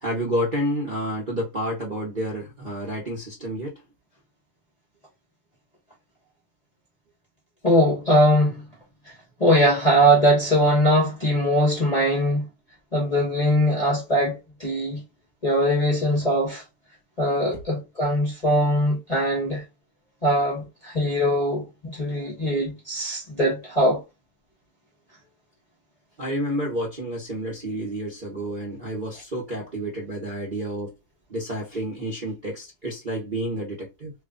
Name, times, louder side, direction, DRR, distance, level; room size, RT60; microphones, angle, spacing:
voice 1, 0.0-3.8 17.5-17.6 26.2-30.9 31.3-34.1, equal, 40° right, 0.8 m, -30 dB
voice 2, 7.6-8.6 9.4-12.4 12.9-15.0 15.4-16.6 17.2-19.6 20.2-24.0, equal, 25° left, 0.9 m, -21 dB
3.0 x 2.3 x 3.6 m
omnidirectional pair, 2.0 m